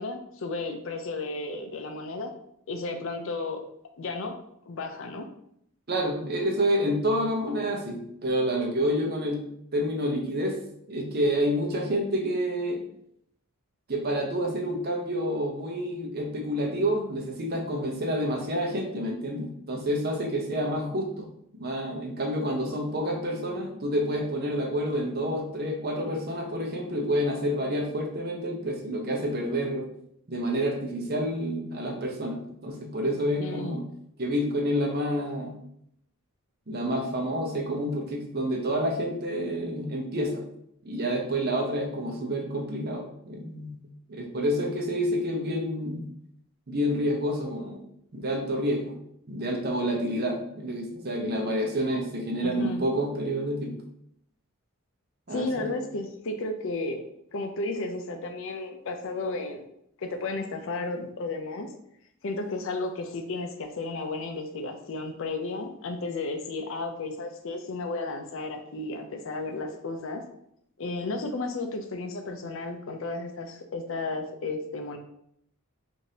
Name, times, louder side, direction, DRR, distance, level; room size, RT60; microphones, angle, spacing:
voice 1, 0.0-2.3 2.7-3.6 4.0-4.4 4.7-5.3 33.4-33.8 52.4-52.8 55.3-57.0 57.3-59.6 60.0-61.7 62.2-70.2 70.8-75.0, left 3 dB, 60° left, 6 dB, 0.5 m, -33 dB
voice 2, 5.9-10.6 10.9-12.8 13.9-21.3 21.6-29.9 30.3-33.9 34.2-35.6 36.7-40.4 40.8-43.8 44.1-46.1 46.7-47.8 48.1-49.0 49.3-53.8 55.3-55.7, equal, 45° right, 2 dB, 0.7 m, -28 dB
4.8 x 2.6 x 2.8 m, 0.73 s
head